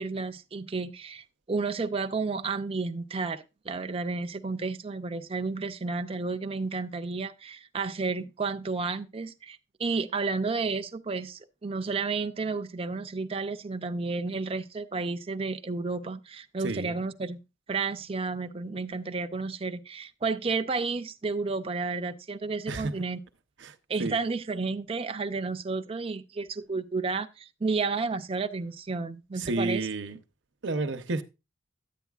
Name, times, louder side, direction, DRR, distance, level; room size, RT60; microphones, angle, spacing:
voice 1, 0.0-17.4 17.7-23.2 23.9-29.9, right 4 dB, 30° right, 0.5 m, -32 dB
voice 2, 16.6-16.9 22.7-22.9 23.6-23.7 24.0-24.2 29.4-30.2 30.6-31.2, right 3 dB, 60° right, 0.7 m, -30 dB
10.0 x 8.8 x 2.3 m
head